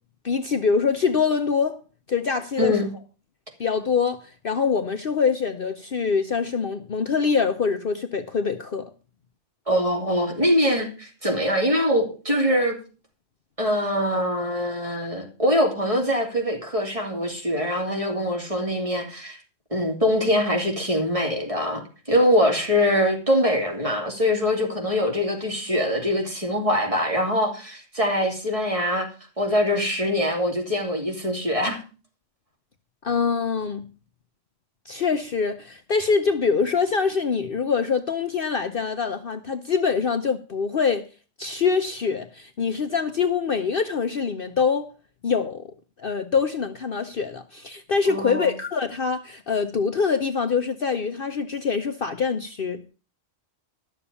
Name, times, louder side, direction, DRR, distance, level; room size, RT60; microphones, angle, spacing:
voice 1, 0.2-1.8 2.1-2.8 3.6-8.9 33.0-33.9 34.8-41.1 41.4-44.9 45.2-45.7 46.0-52.8, left 5 dB, 50° left, 0.9 m, -24 dB
voice 2, 2.6-2.9 9.7-12.8 13.6-19.4 19.7-29.1 29.4-31.8 48.1-48.5, equal, 25° right, 3.0 m, -23 dB
12.0 x 7.1 x 6.9 m
omnidirectional pair, 1.3 m